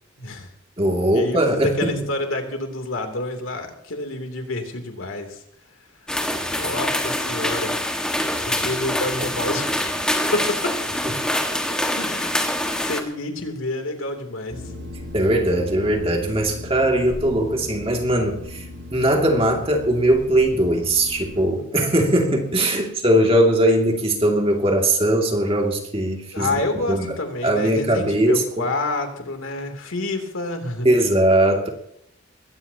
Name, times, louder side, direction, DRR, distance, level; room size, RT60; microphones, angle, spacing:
voice 1, 0.2-0.5 1.1-5.4 6.3-7.8 8.4-9.7 10.3-11.0 12.0-12.3 12.7-14.6 26.3-30.9, left 2 dB, 80° left, 4 dB, 3.2 m, -28 dB
voice 2, 0.8-2.1 11.0-11.1 15.1-18.7 18.9-26.5 26.9-27.2 27.4-28.6 30.8-31.7, right 1 dB, 25° right, 1 dB, 2.6 m, -20 dB
sound 1, 6.1-13.0, left 1 dB, 5° left, 1.7 m, -25 dB
sound 2, 14.5-21.5, left 1 dB, 70° right, 7.8 m, -37 dB
21.5 x 17.0 x 3.0 m, 0.73 s
head